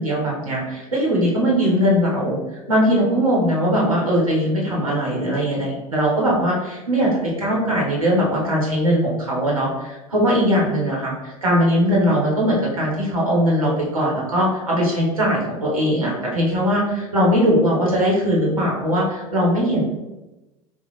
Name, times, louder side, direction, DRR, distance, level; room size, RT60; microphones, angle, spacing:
voice 1, 0.0-2.4 2.7-19.8, equal, 90° right, -4 dB, 1.0 m, -20 dB
3.0 x 2.4 x 4.0 m, 1.0 s
hypercardioid pair, 75°, 17 cm